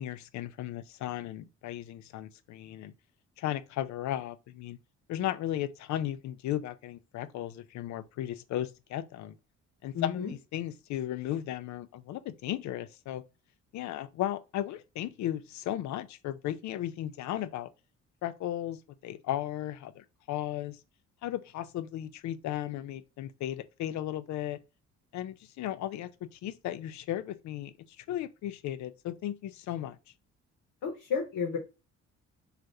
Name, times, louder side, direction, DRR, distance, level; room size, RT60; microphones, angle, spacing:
voice 1, 0.0-2.9 3.4-4.8 5.1-9.4 9.8-13.2 13.7-17.7 18.2-20.8 21.2-24.6 25.1-30.0, left 12 dB, 70° left, 0.4 m, -35 dB
voice 2, 9.9-10.3 30.8-31.6, left 6 dB, 85° left, 0.9 m, -32 dB
3.2 x 2.4 x 2.7 m
cardioid pair, 90°, 30 cm